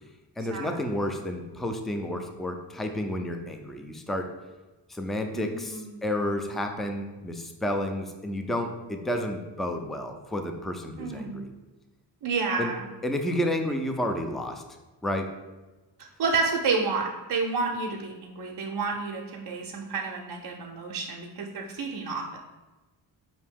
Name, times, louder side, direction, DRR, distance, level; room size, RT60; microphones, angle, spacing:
voice 1, 0.4-4.3 4.9-11.5 12.6-12.8 13.0-14.6 15.0-15.3, left 1 dB, ahead, 4 dB, 0.4 m, -31 dB
voice 2, 5.3-6.1 11.0-11.5 12.2-12.8 16.2-22.4, right 4 dB, 55° right, 0 dB, 0.6 m, -30 dB
5.0 x 2.8 x 3.5 m, 1.2 s
cardioid pair, 55°, 47 cm